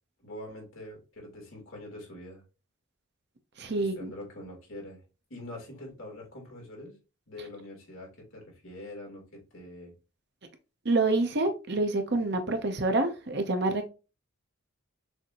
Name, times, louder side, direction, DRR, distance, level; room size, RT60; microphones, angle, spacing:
voice 1, 0.2-2.4 3.8-5.0 5.3-7.0 7.3-9.9, left 1 dB, 70° left, 2.6 m, -44 dB
voice 2, 3.6-4.1 10.8-13.9, right 2 dB, 50° right, 0.8 m, -27 dB
6.4 x 2.7 x 3.0 m
head